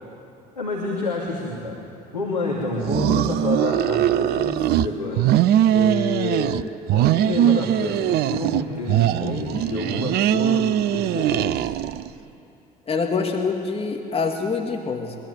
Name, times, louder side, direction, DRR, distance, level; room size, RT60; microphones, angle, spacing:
voice 1, 0.5-1.8 2.1-5.3 5.7-6.6 6.9-11.6, left 2 dB, 90° left, -4 dB, 2.9 m, -28 dB
sound 1, 2.8-4.9 5.2-6.6 6.9-8.6 8.9-12.1, right 12 dB, 55° right, 0.7 m, -21 dB
voice 2, 12.9-15.2, left 4 dB, 30° left, 2 dB, 2.8 m, -25 dB
24.5 x 21.0 x 9.4 m, 2.8 s
figure-of-eight pair, 55°, 20 cm